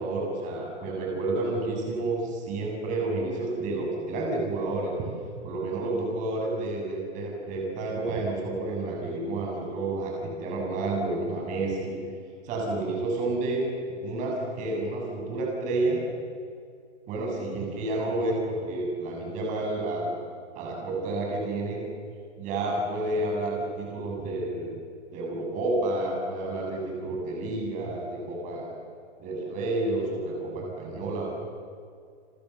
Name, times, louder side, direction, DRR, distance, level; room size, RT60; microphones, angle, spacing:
voice 1, 0.0-5.1 5.4-12.0 12.4-13.7 14.0-16.0 17.1-20.2 20.5-21.8 22.4-24.7 25.1-28.7 29.2-31.3, right 2 dB, 20° right, -1 dB, 7.0 m, -30 dB
28.5 x 26.5 x 7.1 m, 2.3 s
hypercardioid pair, 170°, 35 cm